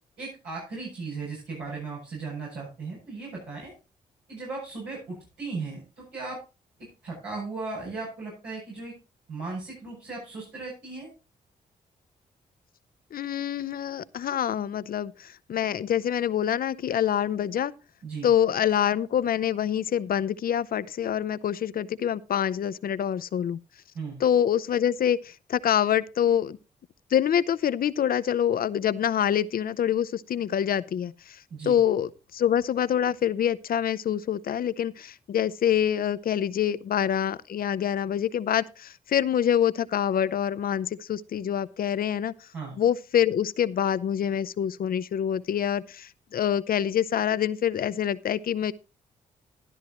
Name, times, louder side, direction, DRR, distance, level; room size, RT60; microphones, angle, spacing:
voice 1, 0.2-3.7 4.3-6.4 7.0-8.9 9.3-11.1 18.0-18.3 23.9-24.2 31.5-31.8 42.5-42.7, right 4 dB, 85° right, 7.8 m, -36 dB
voice 2, 13.1-17.7 18.2-23.6 24.2-26.6 27.1-42.5 42.8-48.7, left 9 dB, 60° left, 0.6 m, -26 dB
13.0 x 11.0 x 3.0 m
supercardioid pair, 50°, 17 cm